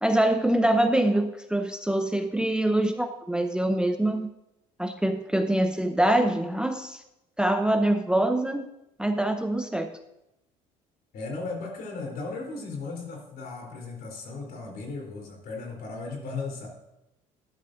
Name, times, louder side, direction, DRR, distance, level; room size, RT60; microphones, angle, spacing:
voice 1, 0.0-4.3 4.8-7.0 7.4-8.7 9.0-9.9, right 1 dB, 5° right, 7 dB, 0.7 m, -24 dB
voice 2, 11.1-16.7, left 3 dB, 60° left, -1 dB, 3.6 m, -36 dB
12.5 x 11.5 x 2.6 m, 0.88 s
supercardioid pair, 70°, 17 cm